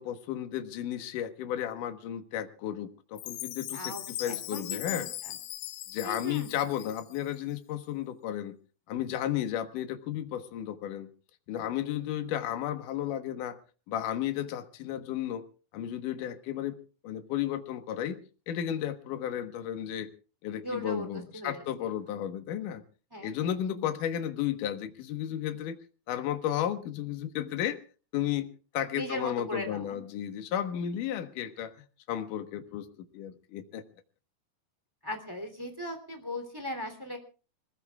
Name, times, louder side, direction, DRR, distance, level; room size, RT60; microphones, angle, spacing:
voice 1, 0.0-3.9 4.2-5.1 5.9-8.6 8.9-11.1 11.5-13.6 13.9-15.4 15.7-16.8 17.0-18.2 18.5-20.1 20.4-22.8 23.2-25.8 26.1-27.8 28.1-28.5 28.7-31.7 32.1-33.8, left 10 dB, 65° left, 8 dB, 2.5 m, -33 dB
Chime, 3.2-7.4, left 14 dB, 80° left, 3.0 m, -39 dB
voice 2, 3.7-5.3 6.0-6.6 20.6-21.6 23.1-23.5 28.9-30.0 35.0-37.2, left 1 dB, 5° right, 5 dB, 2.0 m, -38 dB
26.0 x 20.5 x 2.4 m, 0.36 s
omnidirectional pair, 4.7 m